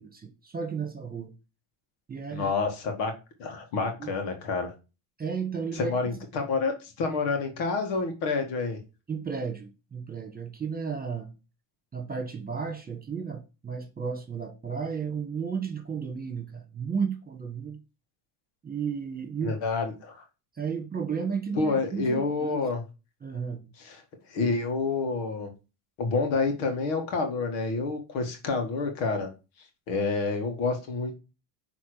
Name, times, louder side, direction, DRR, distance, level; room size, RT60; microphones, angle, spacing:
voice 1, 0.0-1.3 2.1-2.5 4.0-4.1 5.2-5.9 9.1-11.3 11.9-17.8 18.6-19.5 20.6-22.6 23.2-23.7, right 6 dB, 20° right, 1.6 m, -33 dB
voice 2, 2.3-3.1 3.4-4.7 5.7-8.8 19.4-20.2 21.6-22.8 23.8-24.0 24.3-25.5 26.0-29.3 29.9-31.2, left 4 dB, 85° left, 1.9 m, -28 dB
6.0 x 3.5 x 4.9 m
supercardioid pair, 90°, 48 cm